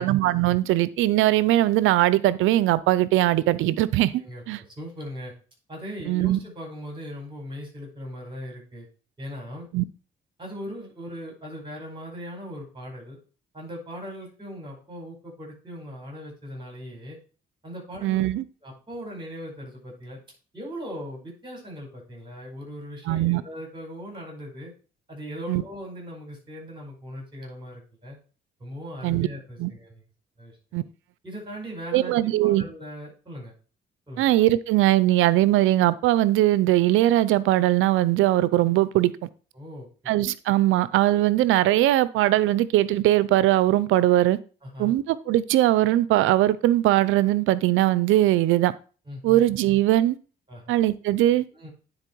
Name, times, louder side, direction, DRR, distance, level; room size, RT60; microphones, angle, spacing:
voice 1, 0.0-4.1 4.5-4.6 6.1-6.4 9.7-9.8 18.0-18.4 23.1-23.4 25.5-25.6 29.0-29.3 29.6-29.7 30.7-30.8 31.9-32.6 34.2-39.1 40.1-44.4 44.8-48.7 49.2-50.2 50.7-51.4, right 15 dB, 90° right, 0.5 m, -20 dB
voice 2, 4.8-5.3 5.7-8.9 9.2-9.7 10.4-13.2 13.5-17.2 17.6-18.2 18.6-20.2 20.5-24.7 25.1-28.2 28.6-30.0 30.4-30.6 31.2-32.1 32.4-33.5 34.1-34.3 39.5-39.9 44.6-45.0 49.0-49.4 50.5-50.7 51.5-51.7, equal, 25° right, 4.9 m, -39 dB
9.7 x 4.2 x 4.5 m
cardioid pair, 90°, 20 cm